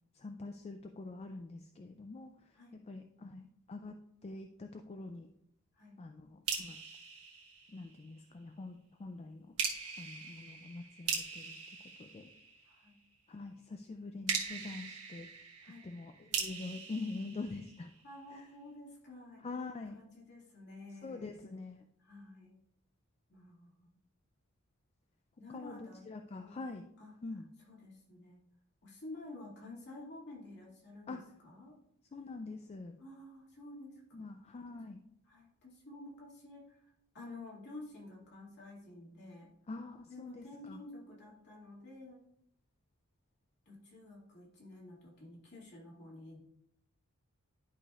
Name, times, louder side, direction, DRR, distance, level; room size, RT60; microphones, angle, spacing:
voice 1, 0.1-2.6 2.9-4.0 4.2-5.3 6.0-6.8 7.7-11.6 12.0-12.3 13.3-15.3 15.8-17.9 18.3-18.4 19.4-20.0 21.0-21.8 25.5-26.9 27.2-27.5 31.1-31.2 32.1-33.0 34.1-35.0 39.7-40.8, left 3 dB, 30° left, 5 dB, 0.3 m, -45 dB
voice 2, 2.5-2.8 5.7-6.0 12.6-13.0 15.6-15.9 18.0-21.3 22.1-22.6 23.3-23.9 25.4-26.0 26.4-26.6 27.0-27.1 27.7-28.4 28.8-31.8 33.0-34.3 35.3-39.5 40.1-42.2 43.7-46.4, left 2 dB, 50° left, -3 dB, 2.2 m, -51 dB
sound 1, 6.5-8.2 9.6-12.9 14.3-18.2, right 5 dB, 80° right, 1.2 m, -40 dB
11.0 x 5.1 x 2.4 m, 0.74 s
head